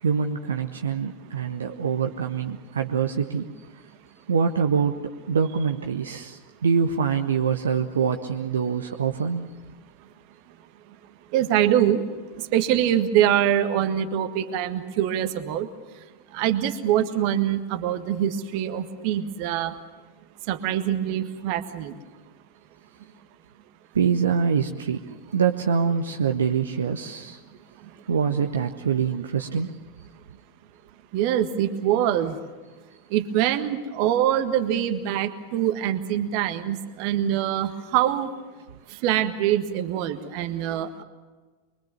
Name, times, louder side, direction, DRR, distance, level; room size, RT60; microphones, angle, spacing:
voice 1, 0.0-3.5 4.3-9.5 23.9-27.4 28.1-29.8, right 6 dB, 70° right, 4 dB, 1.0 m, -25 dB
voice 2, 11.3-12.0 12.4-15.7 16.3-19.7 20.5-21.9 31.1-32.4 33.1-38.3 39.0-41.0, right 11 dB, 45° right, 9 dB, 1.6 m, -24 dB
24.0 x 23.0 x 7.3 m, 1.3 s
figure-of-eight pair, 90°, 0 cm